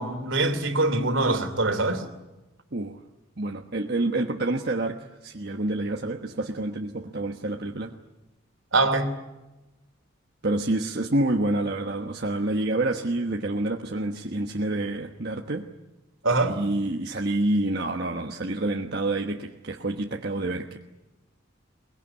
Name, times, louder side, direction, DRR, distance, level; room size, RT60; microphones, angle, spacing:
voice 1, 0.0-2.0 8.7-9.1 16.2-16.5, right 2 dB, 70° right, 3.0 m, -23 dB
voice 2, 2.7-3.0 3.4-7.9 10.4-15.7 16.4-20.8, right 2 dB, 50° right, 1.3 m, -28 dB
23.0 x 21.0 x 9.8 m
head